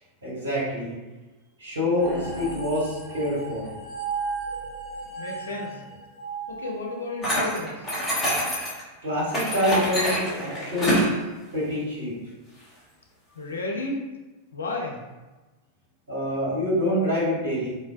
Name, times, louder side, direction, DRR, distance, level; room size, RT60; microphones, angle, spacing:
voice 1, 0.2-0.9 1.6-3.6 9.0-11.1 11.5-12.1 16.1-17.7, left 1 dB, 70° right, -8 dB, 1.1 m, -26 dB
sound 1, 2.0-7.4, right 4 dB, 20° right, 0.9 m, -35 dB
voice 2, 5.2-5.8 6.5-7.9 13.4-14.0 14.5-15.2, left 2 dB, 70° left, 0 dB, 0.4 m, -32 dB
sound 2, 7.2-8.8 9.3-11.1, equal, 15° left, 0.8 m, -26 dB
2.5 x 2.1 x 2.4 m, 1.1 s
figure-of-eight pair, 90°, 0 cm